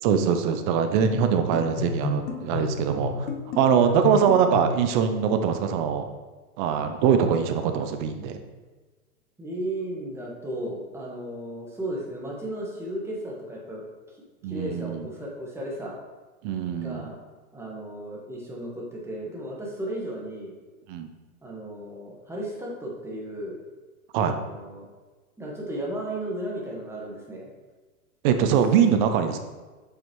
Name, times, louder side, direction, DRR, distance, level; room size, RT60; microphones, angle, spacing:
voice 1, 0.0-3.3 3.6-6.0 6.6-8.4 14.4-15.1 16.4-17.1 20.9-21.1 24.1-24.3 28.2-29.4, right 7 dB, 35° right, 7 dB, 0.6 m, -23 dB
sound 1, 1.0-4.9, left 5 dB, 55° left, 1.0 m, -31 dB
voice 2, 9.4-13.9 14.5-15.9 16.8-17.1 17.5-20.5 21.4-23.6 24.2-24.9 25.4-27.5, right 1 dB, 5° right, -3 dB, 1.3 m, -35 dB
7.1 x 5.5 x 3.1 m, 1.3 s
hypercardioid pair, 120°, 45 cm